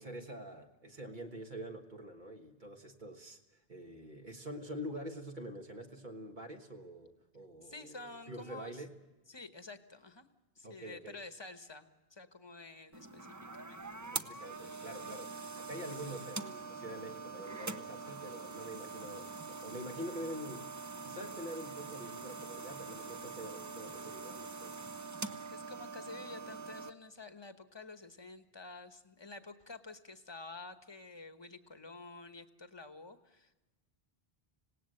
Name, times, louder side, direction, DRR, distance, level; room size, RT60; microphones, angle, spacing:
voice 1, 0.0-8.9 10.6-11.2 14.0-20.7 21.0-24.8, equal, 50° right, 2 dB, 1.6 m, -46 dB
voice 2, 7.6-8.8 9.3-10.3 10.6-13.8 25.5-33.5, left 3 dB, 25° left, 9 dB, 1.1 m, -50 dB
sound 1, 12.9-26.9, right 4 dB, 20° right, 0.6 m, -44 dB
26.0 x 18.0 x 7.8 m, 1.1 s
omnidirectional pair, 1.0 m